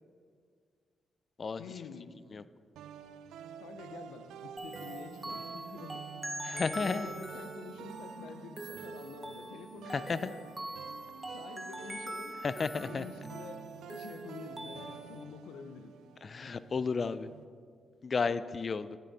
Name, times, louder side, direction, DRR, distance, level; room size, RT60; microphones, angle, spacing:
voice 1, 1.6-2.1 3.6-6.1 6.5-10.4 11.3-12.4 12.8-15.9, left 6 dB, 90° left, 8 dB, 0.6 m, -48 dB
sound 1, 2.8-17.5, right 8 dB, 90° right, 0.3 m, -49 dB
sound 2, 4.6-15.2, right 1 dB, 15° right, 0.8 m, -44 dB
voice 2, 6.4-7.1 9.9-10.3 12.4-13.0 16.2-17.3 18.0-19.0, left 5 dB, 50° left, 14 dB, 0.4 m, -33 dB
9.3 x 8.4 x 4.1 m, 2.1 s
cardioid pair, 60°, 0 cm